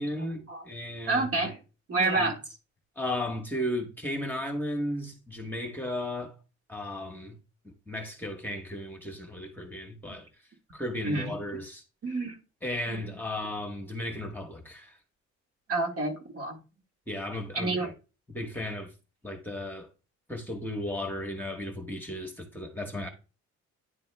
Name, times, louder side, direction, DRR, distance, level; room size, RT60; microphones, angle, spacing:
voice 1, 0.0-1.3 2.2-2.3 3.0-6.3 6.7-7.4 7.9-10.3 10.7-11.8 12.6-15.0 17.1-17.9 18.3-18.9 19.2-19.9 20.3-23.1, left 1 dB, 5° left, 1.2 m, -35 dB
voice 2, 1.1-1.6 1.9-2.4 10.1-10.2 11.0-11.4 12.0-12.4 12.9-13.0 15.7-16.6 17.6-17.9, right 3 dB, 50° right, 1.7 m, -28 dB
9.7 x 3.5 x 3.3 m
cardioid pair, 90°, 30 cm